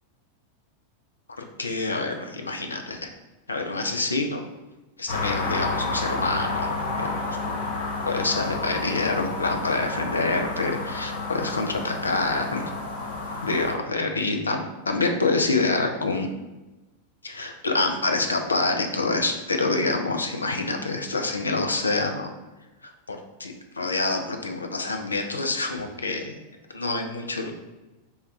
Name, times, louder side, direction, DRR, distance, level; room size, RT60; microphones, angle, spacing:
voice 1, 1.4-3.1 3.5-4.4 5.0-7.2 7.5-7.6 8.0-12.7 13.4-16.3 17.2-22.3 22.8-26.4 26.7-27.5, left 3 dB, 75° left, 4 dB, 0.4 m, -27 dB
sound 1, 5.1-13.7, left 3 dB, 55° left, 0.8 m, -30 dB
3.4 x 2.3 x 3.9 m, 1.1 s
figure-of-eight pair, 90°, 0 cm